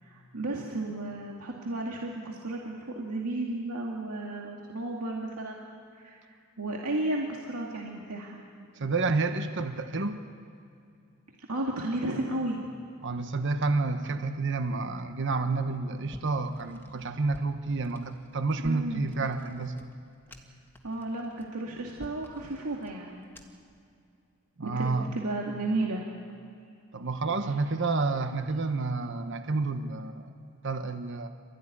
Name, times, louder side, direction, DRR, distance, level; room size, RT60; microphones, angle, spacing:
voice 1, 0.0-5.6 5.9-6.2 6.6-8.4 11.5-12.6 18.6-19.1 20.8-23.2 24.6-26.0, right 2 dB, 85° right, -2 dB, 2.3 m, -33 dB
voice 2, 8.8-10.2 13.0-19.7 24.6-25.1 26.9-30.3 30.6-31.3, right 3 dB, 55° right, 8 dB, 1.1 m, -29 dB
sound 1, 16.1-23.7, left 1 dB, 10° left, 1.7 m, -53 dB
26.5 x 14.0 x 9.9 m, 2.4 s
head